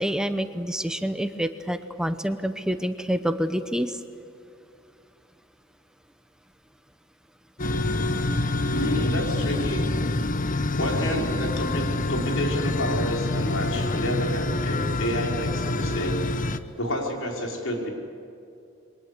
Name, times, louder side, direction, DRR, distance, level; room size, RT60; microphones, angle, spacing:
voice 1, 0.0-4.0, equal, 5° right, 9 dB, 0.9 m, -27 dB
sound 1, 7.6-16.6, left 2 dB, 45° left, 1.0 m, -26 dB
voice 2, 8.7-9.9 10.8-16.2 16.8-17.9, equal, 85° left, 0 dB, 5.5 m, -29 dB
28.0 x 23.0 x 8.3 m, 2.6 s
head